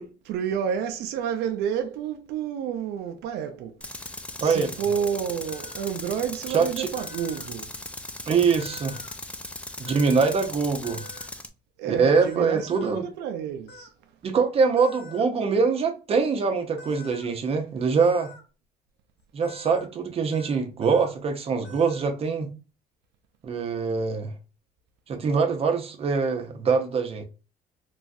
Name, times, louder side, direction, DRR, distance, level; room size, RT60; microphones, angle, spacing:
voice 1, 0.0-3.8 4.4-7.7 11.8-13.9, right 8 dB, 80° right, 0.4 m, -30 dB
Tools, 3.8-11.5, left 2 dB, 5° left, 0.3 m, -38 dB
sound 1, 5.5-5.8 6.9-7.5 8.6-9.1 9.9-10.4 10.8-11.3 12.1-12.9 13.7-13.9 14.8-15.2 16.8-17.3 18.0-18.4 19.4-19.9 20.3-20.5 20.8-21.1 21.6-22.2, left 1 dB, 70° left, 0.9 m, -46 dB
voice 2, 6.5-6.9 8.3-9.0 9.8-11.0 11.8-13.1 14.2-18.3 19.3-22.5 23.4-24.3 25.1-27.2, right 5 dB, 35° right, 0.7 m, -23 dB
3.0 x 2.3 x 2.5 m
cardioid pair, 110°, 17 cm